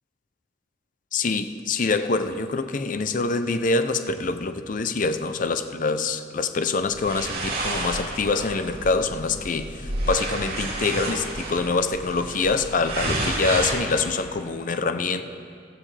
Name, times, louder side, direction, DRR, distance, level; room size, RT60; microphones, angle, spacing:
voice 1, 1.1-15.2, left 3 dB, 45° left, 10 dB, 0.6 m, -25 dB
sound 1, 6.8-13.7, right 2 dB, 50° right, 2.5 m, -30 dB
15.5 x 14.5 x 3.3 m, 2.4 s
head